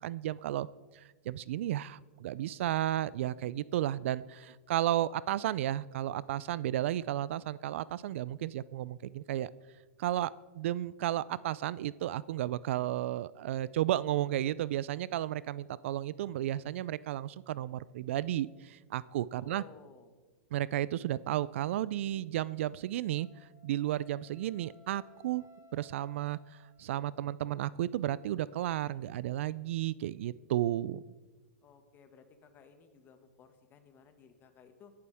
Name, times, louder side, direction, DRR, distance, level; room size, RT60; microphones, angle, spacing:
voice 1, 0.0-0.7 0.9-9.5 10.0-19.6 20.5-25.4 25.7-31.0, right 13 dB, 65° right, 20 dB, 0.4 m, -33 dB
voice 2, 19.4-20.2 31.6-34.9, left 6 dB, 25° left, 7 dB, 1.7 m, -57 dB
Wind instrument woodwind instrument, 23.1-27.1, left 2 dB, 10° right, 5.2 m, -61 dB
20.5 x 11.5 x 3.5 m, 1.3 s
hypercardioid pair, 125°, 7 cm